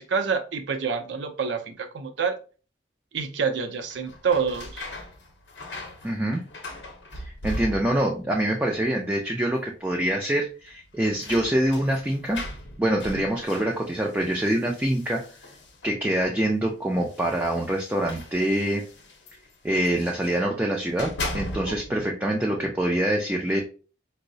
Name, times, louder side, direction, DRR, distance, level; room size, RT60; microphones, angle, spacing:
voice 1, 0.0-2.4 3.1-4.9 13.1-13.2 21.7-22.1, right 5 dB, 70° right, 7 dB, 0.5 m, -28 dB
sound 1, 3.8-8.2 8.5-9.2 9.5-9.6 10.6-16.1 16.9-20.4 20.8-22.0, left 1 dB, 60° left, 0.7 m, -39 dB
voice 2, 6.0-6.4 7.1-12.4 12.8-15.2 15.8-18.8 19.6-23.6, right 1 dB, 10° right, -1 dB, 0.3 m, -25 dB
4.5 x 2.0 x 2.6 m, 0.36 s
head